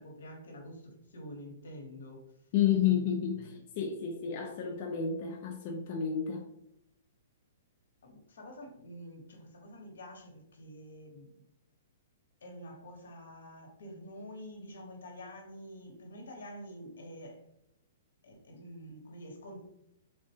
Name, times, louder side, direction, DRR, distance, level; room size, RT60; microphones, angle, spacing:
voice 1, 0.0-2.3 2.9-3.1 3.4-3.5 8.0-11.3 12.4-17.4 18.2-19.6, equal, 85° left, 2 dB, 0.9 m, -47 dB
voice 2, 2.5-6.5, left 8 dB, 40° left, 1 dB, 0.4 m, -31 dB
3.5 x 2.1 x 2.7 m, 0.80 s
hypercardioid pair, 160°, 0 cm